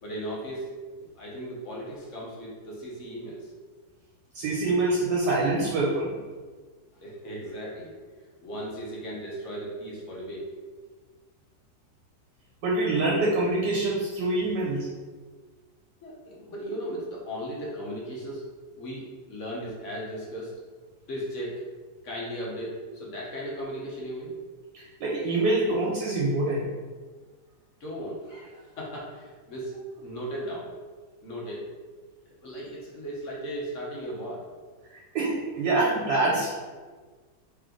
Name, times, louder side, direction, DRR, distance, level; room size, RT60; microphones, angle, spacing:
voice 1, 0.0-0.7 1.0-3.5 6.9-8.0 8.4-10.5 16.0-18.5 18.8-20.5 21.1-21.7 22.0-24.3 27.8-29.7 30.0-30.7 31.2-31.7 32.4-34.5, equal, 50° left, -4 dB, 1.1 m, -36 dB
voice 2, 4.3-6.1 12.6-14.9 24.7-26.7 35.1-36.5, right 2 dB, 70° right, -4 dB, 1.3 m, -25 dB
3.3 x 3.1 x 3.8 m, 1.4 s
omnidirectional pair, 1.9 m